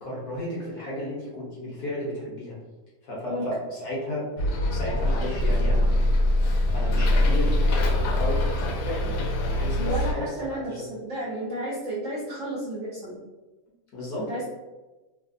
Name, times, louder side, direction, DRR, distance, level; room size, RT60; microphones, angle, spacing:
voice 1, 0.0-2.6 3.0-4.3 4.7-5.9 6.7-7.7 8.1-10.9 13.9-14.3, left 1 dB, 65° left, -5 dB, 1.0 m, -33 dB
Bus, 4.4-10.1, left 1 dB, 85° left, 1.3 m, -23 dB
voice 2, 9.8-13.2 14.2-14.4, right 1 dB, 70° right, -7 dB, 0.7 m, -32 dB
3.2 x 2.0 x 2.5 m, 1.2 s
omnidirectional pair, 2.1 m